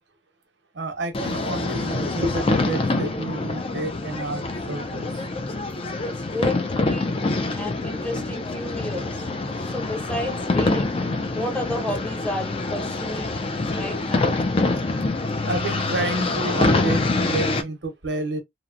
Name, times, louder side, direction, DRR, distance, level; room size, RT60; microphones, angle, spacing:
voice 1, 0.7-5.2 15.5-18.4, right 2 dB, 90° right, 0.8 m, -29 dB
sound 1, 1.1-17.6, left 2 dB, 30° left, 0.4 m, -25 dB
voice 2, 6.1-7.1 7.5-9.3 9.6-10.9 11.3-13.3 13.8-14.3, left 1 dB, 5° left, 0.7 m, -32 dB
2.9 x 2.1 x 2.4 m
head